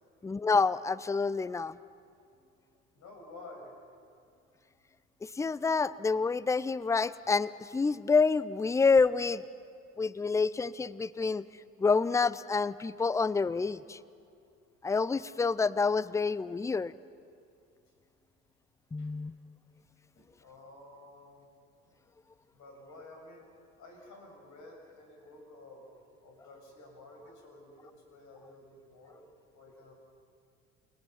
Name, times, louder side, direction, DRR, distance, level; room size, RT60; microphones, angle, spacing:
voice 1, 0.2-1.8 5.2-9.4 10.0-11.4 11.8-14.0 14.8-16.9 18.9-19.3, left 4 dB, 10° left, 19 dB, 0.5 m, -28 dB
voice 2, 2.9-3.7 19.0-19.1 20.2-21.5 22.5-23.5 23.8-25.9 26.2-29.2 29.5-30.0, left 2 dB, 50° left, 1 dB, 6.6 m, -52 dB
29.0 x 21.0 x 5.7 m, 2.4 s
figure-of-eight pair, 55°, 37 cm